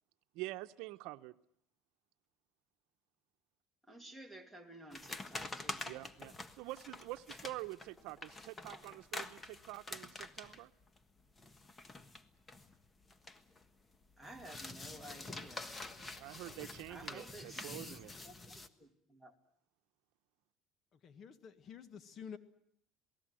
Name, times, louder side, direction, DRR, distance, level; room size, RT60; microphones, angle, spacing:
voice 1, 0.3-1.3 5.8-10.7 15.9-18.1, right 18 dB, 80° right, 10 dB, 0.9 m, -47 dB
voice 2, 3.9-5.9 14.2-15.7 16.9-19.3, right 1 dB, ahead, 7 dB, 2.7 m, -53 dB
sound 1, 4.9-13.7 13.9-18.7, left 2 dB, 20° left, 1.5 m, -47 dB
voice 3, 20.9-22.4, left 7 dB, 45° left, 12 dB, 1.6 m, -50 dB
27.5 x 18.5 x 7.7 m, 0.71 s
cardioid pair, 130°, 0 cm